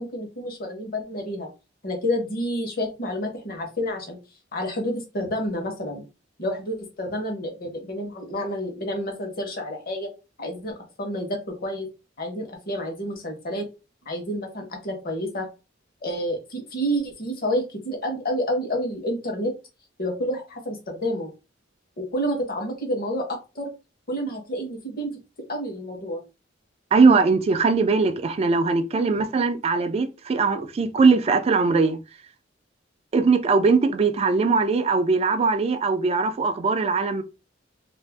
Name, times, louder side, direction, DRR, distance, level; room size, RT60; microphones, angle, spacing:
voice 1, 0.0-1.5 1.8-4.2 4.5-6.0 6.4-10.1 10.4-11.9 12.2-13.7 14.0-15.5 16.0-19.5 20.0-21.3 22.0-23.2 23.5-23.7 24.1-25.1 25.5-26.2, equal, 50° left, 0.9 m, -29 dB
voice 2, 26.9-32.0 33.1-37.2, right 4 dB, 30° right, 0.3 m, -20 dB
2.5 x 2.0 x 3.3 m
head